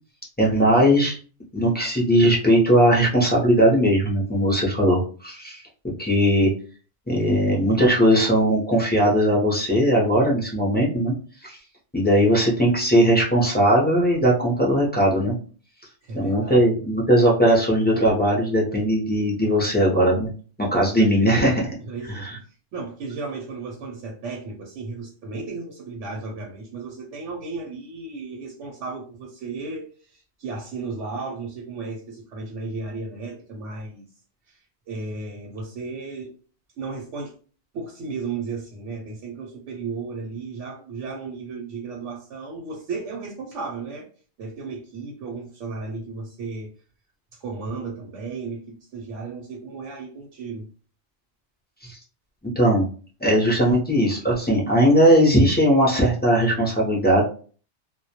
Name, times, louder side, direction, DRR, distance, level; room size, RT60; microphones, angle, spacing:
voice 1, 0.4-1.2 1.5-5.6 6.0-6.5 7.1-11.1 11.4-11.6 11.9-15.3 16.1-20.3 20.6-21.7 22.1-22.4 51.8-52.0 52.4-52.9 53.2-57.2, equal, 15° left, -6 dB, 0.4 m, -19 dB
voice 2, 16.0-16.6 21.9-22.3 22.7-34.0 34.5-36.3 36.8-37.3 37.7-44.1 44.4-46.7 47.3-50.7, right 4 dB, 85° right, -1 dB, 0.9 m, -34 dB
2.2 x 2.1 x 2.7 m, 0.41 s
omnidirectional pair, 1.2 m